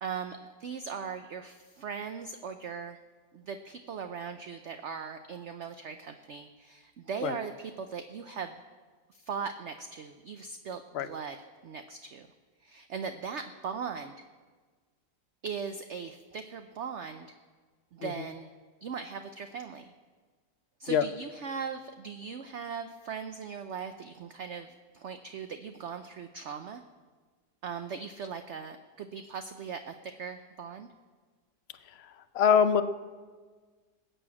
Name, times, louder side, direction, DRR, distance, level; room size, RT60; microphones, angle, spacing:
voice 1, 0.0-3.0 3.3-8.5 9.2-11.4 11.6-12.3 12.6-14.2 15.4-17.3 17.9-18.5 18.8-19.9 20.8-24.7 24.9-26.8 27.6-30.9, right 6 dB, 60° right, 8 dB, 0.8 m, -39 dB
voice 2, 32.3-32.8, left 7 dB, 55° left, 12 dB, 0.7 m, -24 dB
20.0 x 7.0 x 8.6 m, 1.4 s
omnidirectional pair, 1.7 m